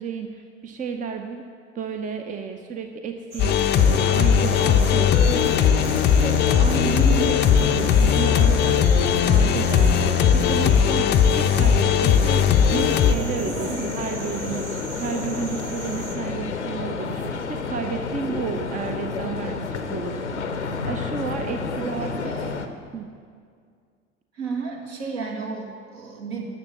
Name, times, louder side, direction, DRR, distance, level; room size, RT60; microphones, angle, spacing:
voice 1, 0.0-1.4 1.7-7.0 7.3-22.1 22.9-23.1, right 6 dB, 20° right, 6 dB, 0.7 m, -32 dB
sound 1, 3.3-16.2, right 2 dB, 75° right, 1.4 m, -38 dB
sound 2, 3.4-13.1, left 8 dB, 30° left, 0.6 m, -18 dB
sound 3, 3.7-22.7, left 4 dB, 85° left, 0.7 m, -30 dB
voice 2, 6.9-7.3 13.5-14.0 21.8-22.5 24.3-26.4, right 4 dB, 60° right, 0 dB, 2.0 m, -31 dB
12.0 x 7.2 x 7.0 m, 2.1 s
figure-of-eight pair, 70°, 35 cm